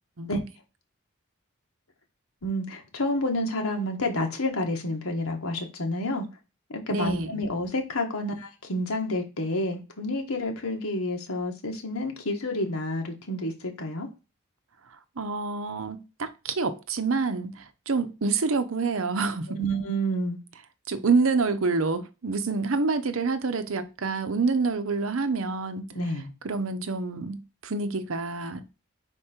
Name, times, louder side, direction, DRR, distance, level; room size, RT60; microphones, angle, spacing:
voice 1, 2.4-6.2 6.7-14.1 19.6-20.4 25.9-26.3, left 1 dB, 85° left, 1.6 m, -29 dB
voice 2, 6.9-7.4 15.2-19.6 20.9-25.9 26.4-28.6, right 4 dB, 70° right, 0.8 m, -27 dB
5.1 x 4.5 x 4.4 m
head